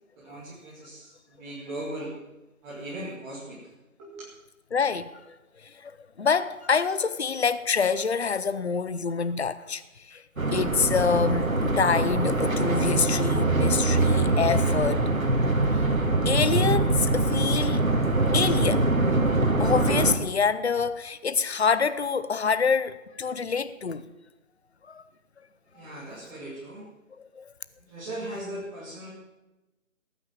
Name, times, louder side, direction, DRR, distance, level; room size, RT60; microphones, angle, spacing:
voice 1, 0.2-2.1 2.6-3.6 4.0-4.2 25.7-26.9 27.9-29.1, right 1 dB, 10° right, 2.4 m, -38 dB
voice 2, 4.7-5.4 5.8-9.8 10.1-10.2 10.5-15.0 16.2-17.9 18.3-18.9 19.6-24.0 24.9-25.0 27.3-27.5, left 5 dB, 50° left, 0.8 m, -26 dB
sound 1, 10.4-20.1, right 2 dB, 75° right, 2.2 m, -23 dB
18.0 x 9.5 x 7.5 m
figure-of-eight pair, 150°, 41 cm